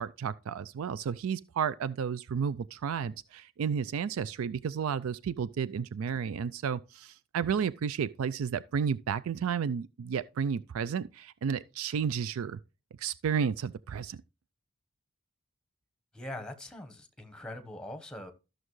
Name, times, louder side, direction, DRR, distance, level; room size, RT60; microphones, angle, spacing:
voice 1, 0.0-12.6 13.0-14.2, right 7 dB, 80° right, 0.4 m, -32 dB
voice 2, 16.1-18.3, left 1 dB, 5° left, 1.0 m, -42 dB
13.0 x 6.3 x 3.1 m
head